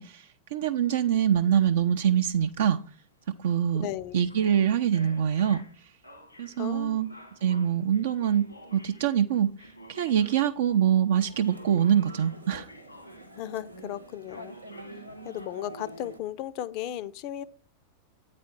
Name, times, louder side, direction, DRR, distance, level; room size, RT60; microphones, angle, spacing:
voice 1, 0.0-2.8 3.4-3.9 4.1-5.6 6.4-7.1 7.4-9.5 9.9-12.7, right 9 dB, 60° right, 0.4 m, -24 dB
sound 1, 0.7-10.9 11.4-13.9 14.3-15.5, equal, 85° left, 1.5 m, -51 dB
voice 2, 3.7-4.2 6.6-7.1 13.4-14.6 15.2-17.4, left 12 dB, 45° left, 0.5 m, -35 dB
sound 2, 11.2-16.2, right 1 dB, 90° right, 0.7 m, -46 dB
8.7 x 4.1 x 5.9 m
figure-of-eight pair, 90°, 0 cm